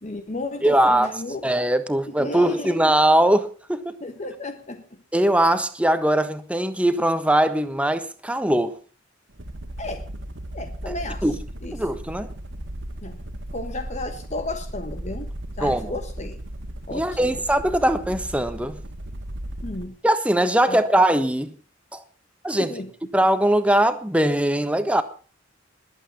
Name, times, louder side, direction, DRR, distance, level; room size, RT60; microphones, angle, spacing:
voice 1, 0.0-1.4 2.1-2.8 4.0-5.0 9.8-10.1 10.5-11.3 11.6-11.9 13.0-13.2 13.5-16.4 16.9-17.4 19.6-20.0 20.7-20.8 22.5-22.9, left 2 dB, 35° left, 1.3 m, -33 dB
voice 2, 0.6-1.1 1.4-4.0 5.1-8.8 10.9-11.0 11.2-11.4 11.7-12.3 15.6-15.9 16.9-18.8 20.0-21.6 21.9-22.0 22.4-22.7 23.1-25.0, right 1 dB, 5° right, 1.2 m, -21 dB
sound 1, 9.3-19.9, right 1 dB, 65° right, 2.0 m, -36 dB
20.5 x 8.7 x 7.1 m
head